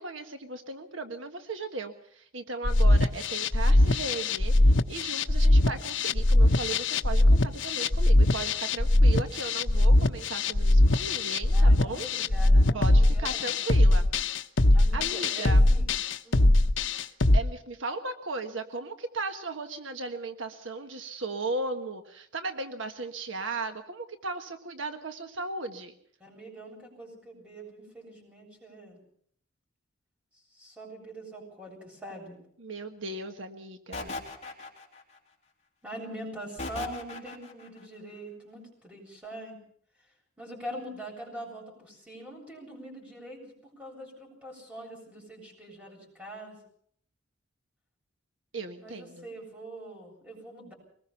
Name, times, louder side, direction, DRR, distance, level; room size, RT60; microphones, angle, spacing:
voice 1, 0.0-12.1 12.7-14.0 14.8-15.6 17.3-25.9 32.6-34.1 48.5-49.3, right 3 dB, 70° right, 7 dB, 1.5 m, -36 dB
sound 1, 2.6-17.4, left 1 dB, 65° left, 1.1 m, -21 dB
voice 2, 11.5-13.5 14.7-15.9 16.2-16.6 26.2-29.0 30.5-32.4 35.8-39.6 40.4-46.6 48.8-50.7, right 1 dB, 5° right, 0 dB, 8.0 m, -43 dB
sound 2, 33.9-35.2 36.6-37.7, left 2 dB, 35° left, 3.4 m, -38 dB
23.5 x 20.5 x 5.8 m, 0.63 s
head